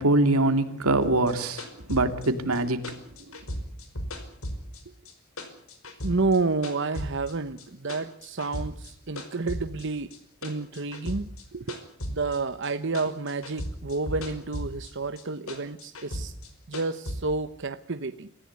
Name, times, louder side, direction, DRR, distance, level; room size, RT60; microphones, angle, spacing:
voice 1, 0.0-2.8, right 2 dB, 90° right, 2.8 m, -23 dB
sound 1, 1.0-5.1 5.4-7.3 7.6-8.9 9.2-12.7 12.9-14.9 15.2-17.2, left 1 dB, 75° left, 5.0 m, -36 dB
voice 2, 6.0-10.2 10.4-11.8 12.1-16.3 16.7-18.3, right 3 dB, 55° right, 1.0 m, -30 dB
27.0 x 15.5 x 9.7 m
head